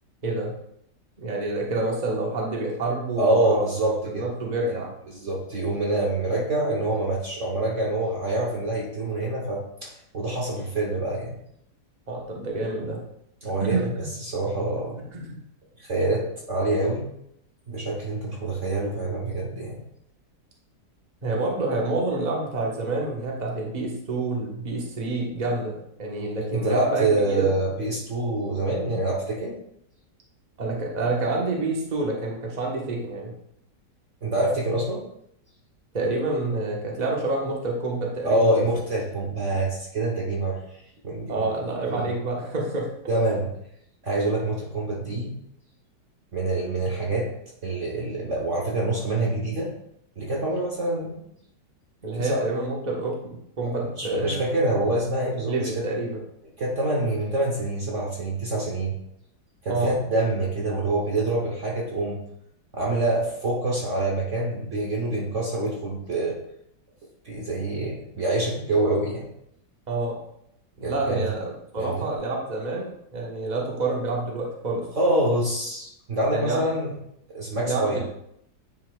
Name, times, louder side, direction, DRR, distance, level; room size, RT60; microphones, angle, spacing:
voice 1, 0.2-0.5 1.2-3.6 4.1-4.9 12.1-13.0 13.6-13.8 15.1-15.3 19.5-19.6 21.2-27.5 30.6-33.3 35.9-38.7 41.3-42.9 52.0-54.6 55.5-56.2 59.7-59.9 69.9-70.2 70.8-74.9 76.3-76.7 77.6-78.0, right 2 dB, 25° right, -2 dB, 1.3 m, -28 dB
voice 2, 3.1-4.3 4.6-4.8 5.1-11.4 13.4-15.0 15.8-17.1 17.7-19.8 26.5-29.5 34.2-35.0 38.2-40.6 41.0-41.5 41.8-42.1 43.1-43.5 44.0-45.3 46.3-47.3 47.6-49.7 50.2-51.2 52.2-52.4 53.8-55.8 56.6-58.9 59.6-62.2 62.7-66.4 67.2-69.2 70.8-71.2 71.8-72.1 74.9-76.9 77.3-78.0, right 2 dB, 45° right, -2 dB, 1.4 m, -26 dB
9.6 x 5.6 x 2.4 m, 0.74 s
omnidirectional pair, 1.9 m